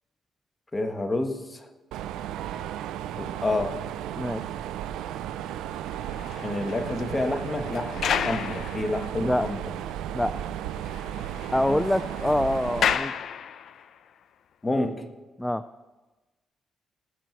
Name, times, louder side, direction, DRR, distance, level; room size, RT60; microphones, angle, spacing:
voice 1, 0.7-1.7 3.2-3.8 6.4-9.6 11.7-11.8 14.6-15.0, left 2 dB, 20° left, 6 dB, 1.4 m, -29 dB
Mechanisms, 1.9-12.9, right 11 dB, 90° right, 0.5 m, -34 dB
sound 1, 5.9-9.6 9.9-10.0 10.3-10.4 10.7-14.0 14.7-14.9, left 8 dB, 65° left, 0.6 m, -33 dB
voice 2, 11.5-13.1 15.4-15.6, left 1 dB, 5° left, 13 dB, 0.4 m, -25 dB
19.5 x 7.5 x 4.6 m, 1.2 s
cardioid pair, 90°, 0 cm